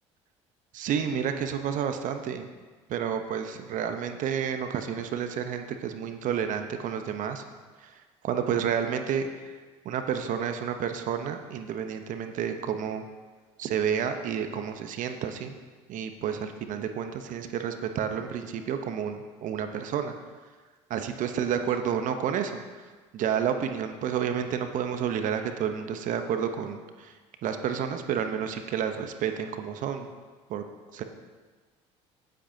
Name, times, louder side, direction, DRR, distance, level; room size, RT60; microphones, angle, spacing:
voice 1, 0.7-2.5 2.9-7.4 7.8-8.0 8.2-9.6 9.8-13.0 13.6-15.6 15.9-20.1 20.9-22.6 23.1-30.1 30.5-30.6 30.9-31.0, right 8 dB, 55° right, 7 dB, 0.9 m, -30 dB
16.5 x 7.9 x 2.8 m, 1.4 s
hypercardioid pair, 70°, 15 cm